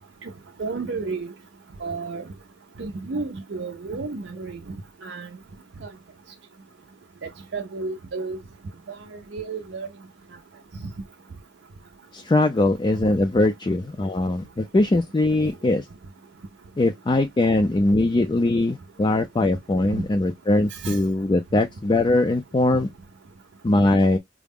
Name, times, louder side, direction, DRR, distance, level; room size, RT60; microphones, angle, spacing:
voice 1, 0.6-1.3 1.8-2.2 2.8-4.6 5.0-5.3 5.8-5.9 7.5-8.4 9.1-9.9 20.7-21.0 22.7-22.8, right 4 dB, 65° right, 0.5 m, -31 dB
voice 2, 12.1-15.9 16.8-22.9 23.6-24.2, left 2 dB, 25° left, 0.3 m, -21 dB
4.7 x 2.1 x 3.5 m
head